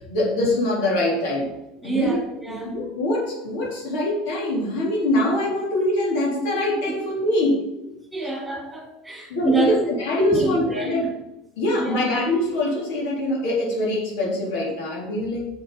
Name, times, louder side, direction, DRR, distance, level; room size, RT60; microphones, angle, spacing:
voice 1, 0.1-1.5 1.8-2.2 2.5-7.6 9.3-11.1 11.6-15.5, left 1 dB, 75° left, -3 dB, 3.9 m, -23 dB
voice 2, 1.8-2.8 6.9-7.0 8.1-9.8 10.2-11.1 11.8-12.1, right 2 dB, ahead, -2 dB, 2.8 m, -27 dB
7.3 x 7.2 x 5.8 m, 0.93 s
cardioid pair, 165°, 0 cm